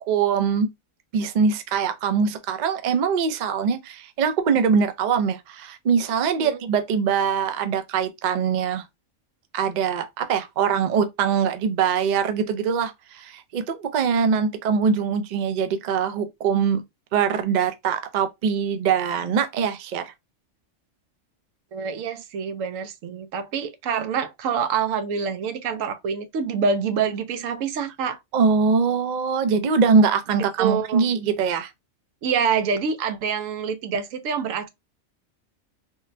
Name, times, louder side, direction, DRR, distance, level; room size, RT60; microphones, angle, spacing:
voice 1, 0.1-0.7 1.1-8.8 9.5-16.8 17.1-20.1 28.3-31.7, right 6 dB, 65° right, 0.4 m, -22 dB
voice 2, 21.7-28.2 30.6-31.1 32.2-34.7, right 6 dB, 85° right, 1.0 m, -26 dB
3.7 x 2.1 x 2.5 m
omnidirectional pair, 1.3 m